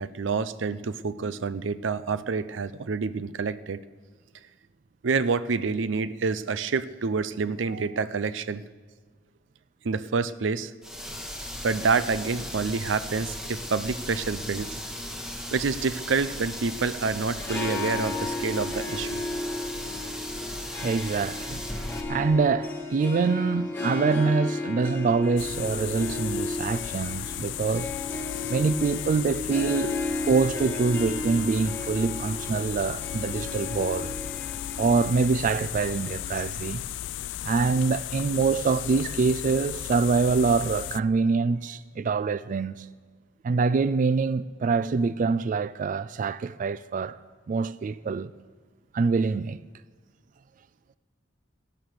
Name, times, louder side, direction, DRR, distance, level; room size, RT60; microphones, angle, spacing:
voice 1, 0.0-3.8 5.0-8.6 9.8-10.7 11.6-14.7 15.5-19.2, right 4 dB, 90° right, 0.6 m, -28 dB
sound 1, 10.8-22.0, left 1 dB, 5° right, 1.5 m, -37 dB
Harp, 17.2-36.6, left 2 dB, 15° left, 1.7 m, -34 dB
voice 2, 20.8-21.6 22.1-27.9 28.5-30.0 30.2-34.1 34.8-36.8 37.4-42.9 43.4-47.2 47.5-48.3 48.9-49.6, right 4 dB, 45° right, 0.3 m, -25 dB
sound 2, 25.4-41.0, left 12 dB, 70° left, 0.3 m, -35 dB
17.5 x 11.0 x 6.6 m
head